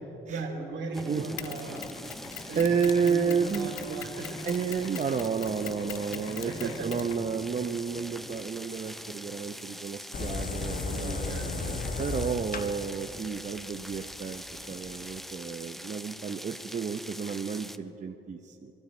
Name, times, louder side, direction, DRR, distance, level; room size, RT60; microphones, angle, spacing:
voice 1, 0.3-1.9 2.4-4.5 5.9-6.9 10.9-11.9, right 3 dB, 65° right, 2 dB, 2.9 m, -38 dB
sound 1, 0.9-17.8, equal, ahead, 0.5 m, -43 dB
Mechanisms, 1.4-7.7, left 14 dB, 90° left, 0.5 m, -44 dB
voice 2, 2.6-3.8 4.4-18.7, right 6 dB, 35° right, 5 dB, 0.7 m, -31 dB
sound 2, 10.1-15.1, left 4 dB, 45° left, 1.2 m, -35 dB
25.0 x 12.5 x 4.4 m, 3.0 s
cardioid pair, 90°, 20 cm